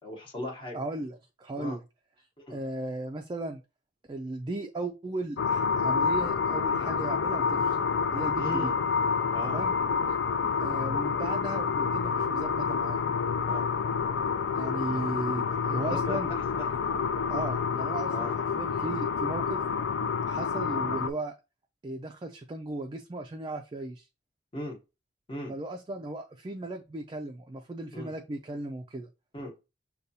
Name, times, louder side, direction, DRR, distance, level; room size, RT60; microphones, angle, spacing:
voice 1, 0.0-0.8 1.6-1.8 2.5-2.6 8.3-8.8 9.3-9.7 13.4-13.7 15.8-17.0 18.1-18.3 24.5-24.8 25.3-25.5 27.9-28.1 29.3-29.6, left 1 dB, 30° left, 0 dB, 1.0 m, -38 dB
voice 2, 0.7-1.8 2.5-3.6 4.1-7.8 8.1-8.7 9.4-9.7 10.6-13.0 14.5-16.3 17.3-19.6 20.3-21.3 21.8-24.1 25.5-29.1, right 2 dB, 25° right, 4 dB, 0.3 m, -36 dB
sound 1, 5.4-21.1, left 5 dB, 85° left, 0.4 m, -28 dB
6.5 x 2.3 x 2.7 m, 0.28 s
head